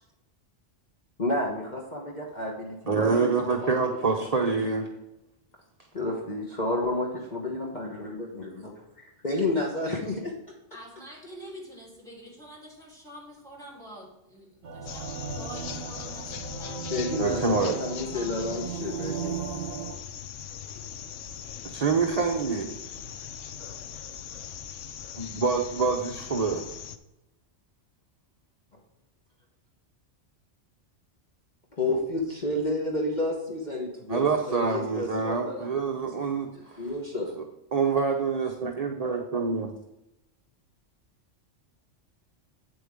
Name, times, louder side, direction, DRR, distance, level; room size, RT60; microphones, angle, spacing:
voice 1, 1.2-3.7 4.0-4.2 5.9-8.7 9.2-10.3 16.9-19.4 31.8-35.7 36.3-37.4, left 2 dB, 40° left, -1 dB, 1.4 m, -31 dB
voice 2, 2.9-4.9 17.2-17.8 21.7-22.7 25.2-26.7 34.1-36.9 37.7-39.7, right 4 dB, 35° right, 1 dB, 0.8 m, -26 dB
voice 3, 10.7-17.1 18.0-18.4, equal, 5° left, -4 dB, 3.2 m, -46 dB
sound 1, 14.6-19.9, right 6 dB, 60° right, 1.3 m, -36 dB
sound 2, 14.9-27.0, left 8 dB, 85° left, 1.0 m, -40 dB
8.6 x 7.7 x 3.6 m, 0.91 s
omnidirectional pair, 1.2 m